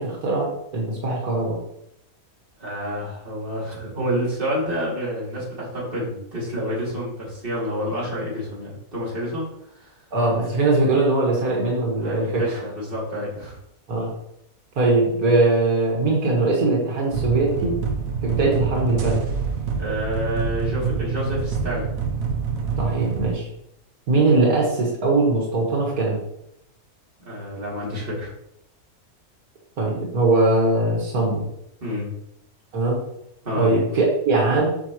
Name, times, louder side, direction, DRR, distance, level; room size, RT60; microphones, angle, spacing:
voice 1, 0.0-1.6 10.1-12.6 13.9-14.1 14.8-17.7 18.2-19.2 22.8-23.5 24.1-26.2 29.8-31.4 32.7-33.0 33.6-34.7, right 2 dB, 85° right, -3 dB, 2.2 m, -21 dB
voice 2, 2.6-9.5 9.8-9.9 12.0-13.6 19.7-21.9 27.2-28.3 31.8-32.1 33.4-33.7, equal, 35° right, -6 dB, 3.1 m, -28 dB
sound 1, 17.1-23.3, right 6 dB, 70° right, 1.4 m, -26 dB
8.6 x 6.1 x 3.1 m, 0.78 s
omnidirectional pair, 1.5 m